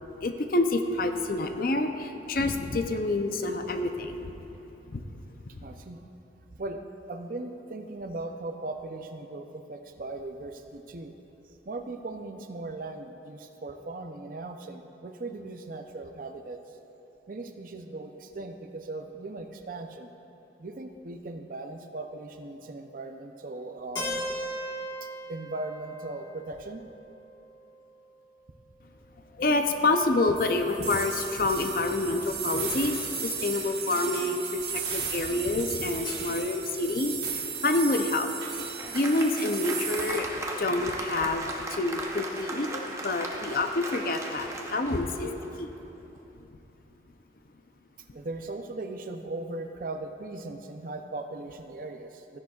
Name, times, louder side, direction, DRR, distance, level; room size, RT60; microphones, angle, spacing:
voice 1, 0.2-4.3 4.9-5.0 29.4-38.3 38.9-41.4 41.7-45.7, left 2 dB, 50° left, 6 dB, 0.6 m, -28 dB
voice 2, 5.6-6.1 6.5-6.8 7.1-11.2 11.7-16.6 17.3-20.1 20.6-24.3 25.0-26.8 48.1-52.4, right 2 dB, 50° right, 5 dB, 0.6 m, -38 dB
Keyboard (musical), 24.0-27.8, equal, 25° left, 1.4 m, -37 dB
sound 1, 30.4-40.2, right 6 dB, 65° right, 1.4 m, -35 dB
Applause, 38.3-45.7, right 2 dB, 15° right, 0.8 m, -37 dB
15.0 x 10.5 x 2.4 m, 3.0 s
head